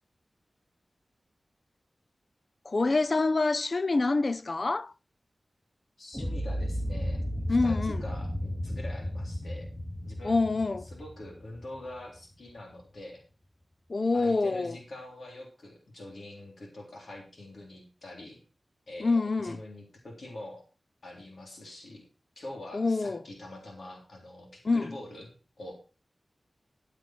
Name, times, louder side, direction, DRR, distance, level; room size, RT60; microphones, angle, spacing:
voice 1, 2.7-4.9 7.5-8.0 10.2-10.9 13.9-14.8 19.0-19.6 22.7-23.2 24.6-25.0, left 3 dB, 45° left, 0.5 m, -26 dB
voice 2, 6.0-9.7 10.0-13.2 14.1-18.4 18.9-20.6 21.0-22.1 22.4-25.3 25.6-25.7, left 1 dB, 75° left, 3.6 m, -45 dB
sound 1, 6.1-12.2, equal, 5° left, 1.7 m, -34 dB
13.5 x 8.1 x 4.5 m
wide cardioid pair, 100°, 0 cm